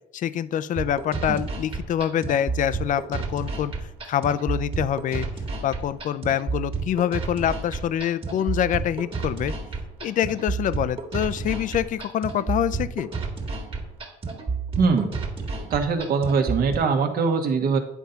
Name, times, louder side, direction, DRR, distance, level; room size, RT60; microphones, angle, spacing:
voice 1, 0.1-5.3 5.6-9.5 10.0-13.1, left 10 dB, 50° left, 15 dB, 0.5 m, -25 dB
sound 1, 0.8-16.8, right 4 dB, 35° right, 1.7 m, -31 dB
voice 2, 14.8-15.1 15.6-17.8, right 5 dB, 60° right, 5 dB, 1.3 m, -22 dB
9.4 x 3.9 x 5.7 m, 0.82 s
cardioid pair, 110°, 17 cm